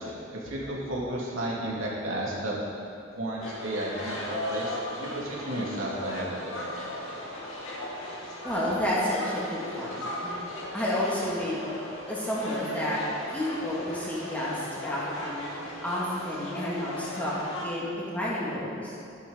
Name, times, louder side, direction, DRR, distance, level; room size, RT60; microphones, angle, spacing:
voice 1, 0.0-2.6 3.1-6.8, right 1 dB, 80° right, -5 dB, 2.6 m, -33 dB
sound 1, 3.4-17.6, left 1 dB, 85° left, 2.3 m, -37 dB
voice 2, 8.4-10.4 10.7-11.6 12.1-13.0 13.3-15.5 15.8-18.9, left 1 dB, 10° left, -8 dB, 2.3 m, -30 dB
13.0 x 10.5 x 4.0 m, 2.6 s
head